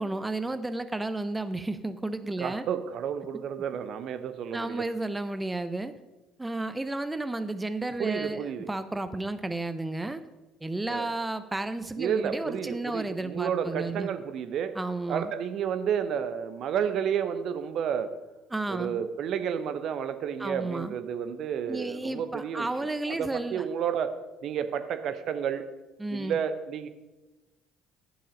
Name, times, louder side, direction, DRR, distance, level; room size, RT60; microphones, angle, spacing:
voice 1, 0.0-2.6 4.5-5.9 6.4-10.2 10.6-14.1 14.8-15.3 18.5-19.0 20.4-20.9 21.7-23.6 26.0-26.4, right 2 dB, 15° right, 11 dB, 0.6 m, -32 dB
voice 2, 2.4-4.9 8.0-8.7 10.9-11.1 12.0-14.7 15.1-18.1 18.7-24.1 24.4-25.6 26.1-26.9, right 8 dB, 55° right, 10 dB, 0.7 m, -31 dB
10.0 x 7.1 x 5.1 m, 1.1 s
figure-of-eight pair, 55°, 0 cm